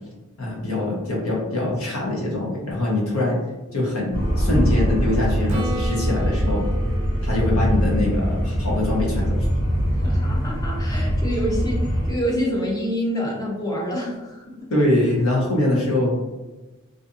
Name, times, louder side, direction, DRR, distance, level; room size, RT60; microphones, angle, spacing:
voice 1, 0.4-3.4 3.7-6.6 7.2-9.5 14.7-16.2, left 1 dB, 75° left, -3 dB, 0.8 m, -23 dB
sound 1, 4.1-12.1, equal, 45° left, 1.3 m, -23 dB
Acoustic guitar / Strum, 5.5-9.3 14.1-14.2, right 1 dB, 35° right, 0.4 m, -34 dB
voice 2, 9.9-14.7, equal, 15° left, -3 dB, 0.6 m, -27 dB
2.6 x 2.5 x 2.4 m, 1.1 s
head